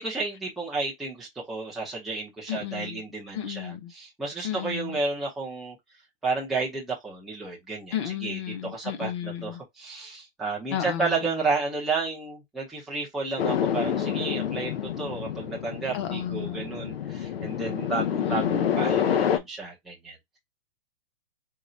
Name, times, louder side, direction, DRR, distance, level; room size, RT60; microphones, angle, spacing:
voice 1, 0.0-5.8 6.2-20.4, right 3 dB, ahead, 0.5 m, -32 dB
voice 2, 2.5-3.0 3.3-3.9 4.4-5.0 7.9-9.6 10.7-11.2 15.9-16.8 18.2-18.9, left 10 dB, 30° left, 0.8 m, -33 dB
sound 1, 13.4-19.4, left 8 dB, 80° left, 0.7 m, -28 dB
3.9 x 2.3 x 4.1 m
hypercardioid pair, 165°, 29 cm